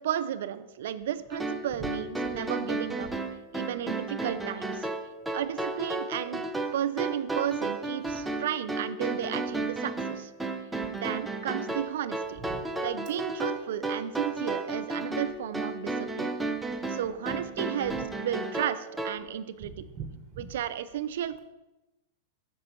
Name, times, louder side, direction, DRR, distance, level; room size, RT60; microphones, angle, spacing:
voice 1, 0.0-3.1 3.5-4.9 5.3-6.5 6.7-10.3 10.9-12.4 12.8-16.4 16.9-19.7 20.4-21.4, right 10 dB, 75° right, 13 dB, 0.4 m, -33 dB
sound 1, 1.3-19.2, right 2 dB, 5° right, 0.5 m, -33 dB
voice 2, 12.4-12.8 16.6-16.9 17.9-18.1 19.6-20.5, right 6 dB, 30° right, 3 dB, 0.8 m, -43 dB
7.6 x 5.9 x 3.0 m, 1.0 s
supercardioid pair, 150°, 0 cm